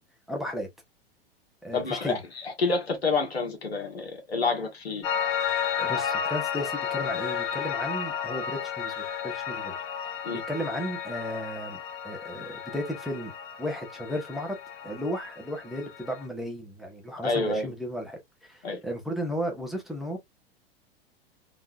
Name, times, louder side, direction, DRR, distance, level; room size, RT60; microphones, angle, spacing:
voice 1, 0.3-0.7 1.6-2.2 5.8-9.7 10.0-13.3 13.6-14.6 14.8-20.2, equal, ahead, 1.4 m, -34 dB
voice 2, 1.7-5.1 10.2-10.4 17.2-17.7 18.6-18.8, left 3 dB, 75° left, 1.9 m, -28 dB
Piano, 5.0-16.3, left 7 dB, 45° left, 1.1 m, -33 dB
3.9 x 3.6 x 2.6 m
figure-of-eight pair, 90°, 31 cm